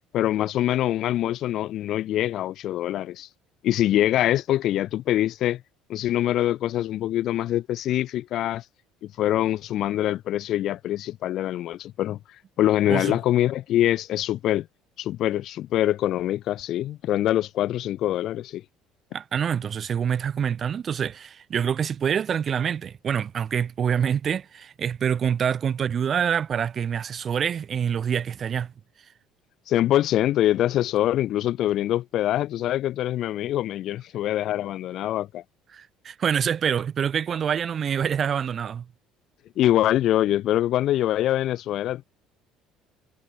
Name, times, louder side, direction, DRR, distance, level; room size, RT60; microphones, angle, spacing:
voice 1, 0.1-3.3 3.6-5.6 5.9-8.6 9.0-12.2 12.6-14.7 15.0-18.6 29.7-35.4 39.6-42.1, left 13 dB, 60° left, 1.6 m, -24 dB
voice 2, 19.1-28.7 35.7-38.8, right 8 dB, 40° right, 1.2 m, -26 dB
cardioid pair, 120°, 0 cm